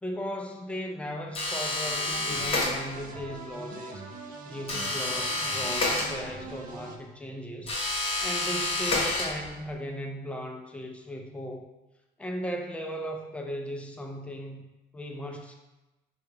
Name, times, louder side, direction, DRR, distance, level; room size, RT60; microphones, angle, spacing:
voice 1, 0.0-4.1 4.4-7.8 8.2-11.7 12.2-15.5, equal, 5° left, 3 dB, 0.4 m, -37 dB
sound 1, 1.3-3.2 4.7-6.6 7.6-9.7, left 2 dB, 35° left, 0.9 m, -29 dB
sound 2, 1.8-7.0, right 3 dB, 55° right, 0.4 m, -43 dB
3.2 x 2.2 x 3.3 m, 1.1 s
cardioid pair, 110°, 17 cm